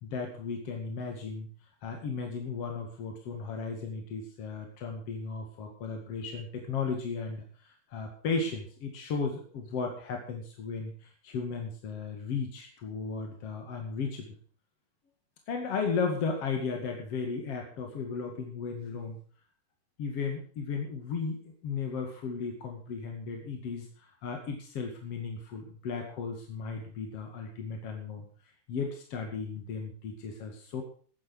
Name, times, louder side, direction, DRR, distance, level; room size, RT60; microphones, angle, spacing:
voice 1, 0.0-1.5 1.8-14.3 15.5-19.2 20.0-28.3 28.7-30.8, left 5 dB, 50° left, 2 dB, 1.9 m, -35 dB
14.0 x 9.8 x 6.3 m, 0.43 s
omnidirectional pair, 5.7 m